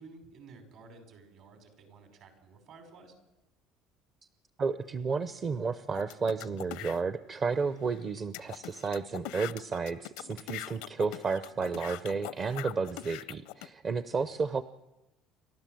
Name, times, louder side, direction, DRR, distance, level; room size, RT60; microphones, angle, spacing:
voice 1, 0.0-3.1 14.1-14.3, right 4 dB, 60° right, 7 dB, 5.2 m, -53 dB
voice 2, 4.6-14.6, right 4 dB, 35° right, 13 dB, 0.7 m, -32 dB
sound 1, 5.9-7.0 7.6-7.7 7.9-8.0 8.3-13.7, left 17 dB, 85° left, 0.6 m, -42 dB
28.5 x 12.5 x 7.7 m, 0.98 s
cardioid pair, 130°, 0 cm